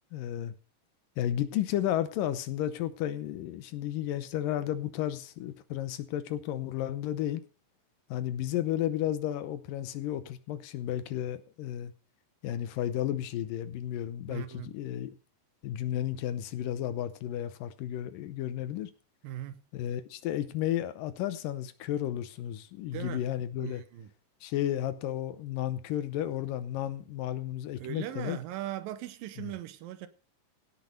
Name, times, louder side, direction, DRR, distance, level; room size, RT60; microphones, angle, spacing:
voice 1, 0.1-0.5 1.2-7.4 8.1-11.9 12.4-15.1 15.6-18.9 19.7-23.8 24.4-28.4 29.4-29.5, left 12 dB, 80° left, 2.5 m, -33 dB
voice 2, 14.3-14.7 19.2-19.6 22.9-23.2 23.6-24.1 27.8-30.1, right 12 dB, 90° right, 2.5 m, -39 dB
16.5 x 6.3 x 5.2 m
omnidirectional pair, 4.0 m